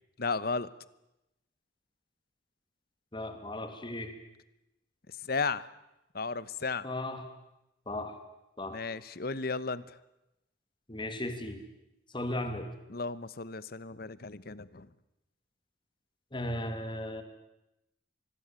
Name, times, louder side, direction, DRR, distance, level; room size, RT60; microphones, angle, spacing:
voice 1, 0.2-0.7 5.2-5.6 6.1-6.9 8.7-10.0 12.9-14.9, left 4 dB, 55° left, 17 dB, 1.1 m, -34 dB
voice 2, 3.1-4.1 6.8-7.2 7.9-8.1 8.6-8.8 10.9-11.6 12.1-12.7 16.3-17.2, left 1 dB, 25° left, 7 dB, 2.8 m, -36 dB
26.0 x 21.0 x 9.0 m, 0.92 s
head